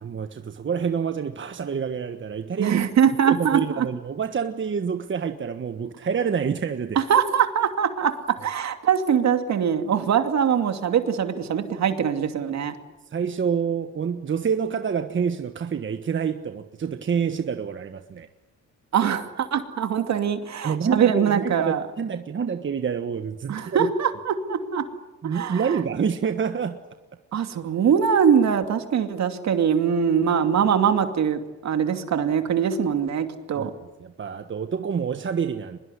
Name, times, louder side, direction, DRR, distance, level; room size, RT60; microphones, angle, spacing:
voice 1, 0.0-2.8 3.3-7.0 13.1-18.3 20.6-23.9 25.2-26.8 33.5-33.7 34.0-35.8, right 6 dB, 40° right, 8 dB, 1.4 m, -27 dB
voice 2, 2.6-3.9 7.0-8.1 8.4-12.7 18.9-21.8 23.5-24.8 25.2-25.8 27.3-33.7, right 7 dB, 65° right, 7 dB, 2.7 m, -22 dB
24.0 x 21.5 x 9.9 m, 1.1 s
cardioid pair, 90°, 30 cm